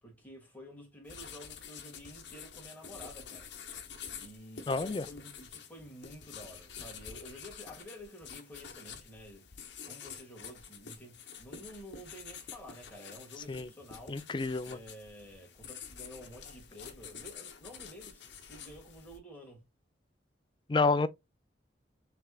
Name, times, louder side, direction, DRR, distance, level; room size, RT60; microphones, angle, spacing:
voice 1, 0.0-3.5 4.1-9.4 9.8-14.2 14.6-19.6, equal, 10° left, 1.9 m, -50 dB
sound 1, 1.1-19.2, left 7 dB, 75° left, 0.9 m, -48 dB
voice 2, 4.7-5.0 13.5-13.7 14.1-14.8 20.7-21.1, left 3 dB, 25° left, 0.4 m, -29 dB
5.8 x 3.3 x 2.3 m
head